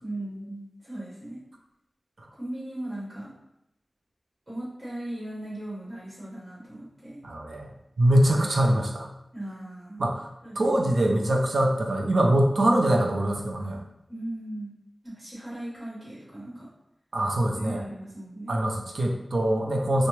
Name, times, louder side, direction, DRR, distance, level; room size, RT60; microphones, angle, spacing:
voice 1, 0.0-1.4 2.3-3.3 4.5-7.2 8.4-8.5 9.3-10.1 10.4-10.9 14.1-16.7 17.5-18.5, right 1 dB, 25° right, -10 dB, 1.4 m, -38 dB
voice 2, 7.2-7.7 8.0-9.1 10.0-10.2 10.6-13.8 17.1-17.8 18.5-20.1, right 1 dB, 80° right, 1 dB, 0.5 m, -23 dB
3.2 x 2.0 x 3.2 m, 0.85 s
wide cardioid pair, 70°, 0 cm